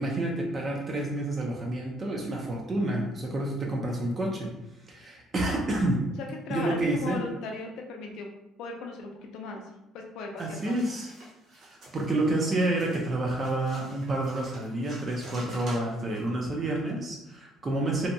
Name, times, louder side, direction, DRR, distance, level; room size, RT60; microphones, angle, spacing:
voice 1, 0.0-4.5 4.9-6.1 6.5-7.2 10.4-11.1 11.6-18.1, right 1 dB, 25° right, -1 dB, 0.4 m, -29 dB
voice 2, 6.2-8.3 8.6-9.6 9.9-10.8 17.6-17.8, left 3 dB, 70° left, 2 dB, 0.5 m, -37 dB
sound 1, 10.4-16.3, right 1 dB, 45° right, 1.1 m, -48 dB
2.6 x 2.2 x 2.6 m, 0.90 s
cardioid pair, 150°, 0 cm